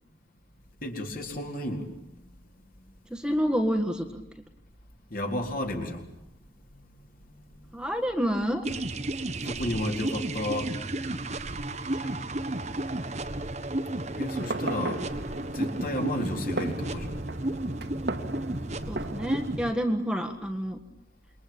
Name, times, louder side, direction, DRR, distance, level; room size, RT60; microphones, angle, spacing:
voice 1, 0.8-1.9 2.2-2.4 5.1-6.1 6.5-7.6 9.3-10.7 14.2-15.0 15.5-17.2, left 1 dB, 50° left, 3 dB, 4.0 m, -33 dB
voice 2, 3.1-4.2 7.7-8.6 11.9-12.1 18.9-20.8, equal, 5° right, 5 dB, 1.6 m, -28 dB
sound 1, 8.6-19.7, right 1 dB, 40° right, 1.3 m, -33 dB
Fireworks, 14.3-19.6, right 2 dB, 65° right, 1.9 m, -38 dB
28.0 x 22.5 x 8.7 m, 0.81 s
head